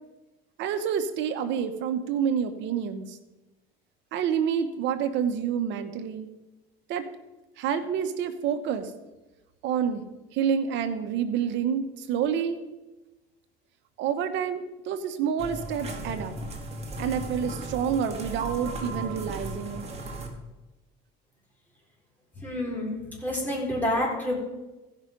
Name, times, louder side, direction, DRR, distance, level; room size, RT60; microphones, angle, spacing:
voice 1, 0.6-3.2 4.1-6.3 6.9-7.1 7.6-8.9 9.6-10.0 10.3-12.6 14.0-16.4 17.0-19.9, right 8 dB, 65° right, 10 dB, 1.1 m, -28 dB
sound 1, 15.4-20.3, right 2 dB, 30° right, 2.1 m, -36 dB
voice 2, 22.4-24.4, left 1 dB, 10° left, -3 dB, 4.1 m, -28 dB
15.5 x 5.7 x 5.2 m, 1.1 s
supercardioid pair, 105°, 20 cm